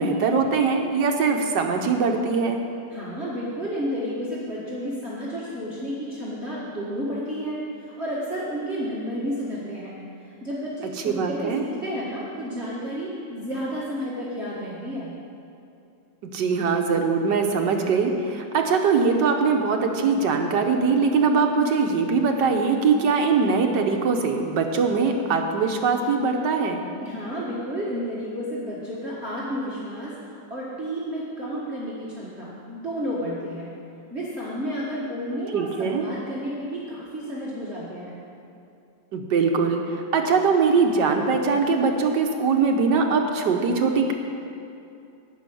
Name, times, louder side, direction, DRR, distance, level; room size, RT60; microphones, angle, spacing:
voice 1, 0.0-2.7 11.0-11.7 16.3-26.9 35.5-36.1 39.1-44.1, right 4 dB, 70° right, 3 dB, 1.4 m, -22 dB
voice 2, 2.9-9.9 10.4-15.1 27.0-30.1 30.5-33.7 34.1-38.1, equal, 35° right, -8 dB, 1.9 m, -31 dB
12.5 x 5.5 x 9.1 m, 2.6 s
omnidirectional pair, 2.0 m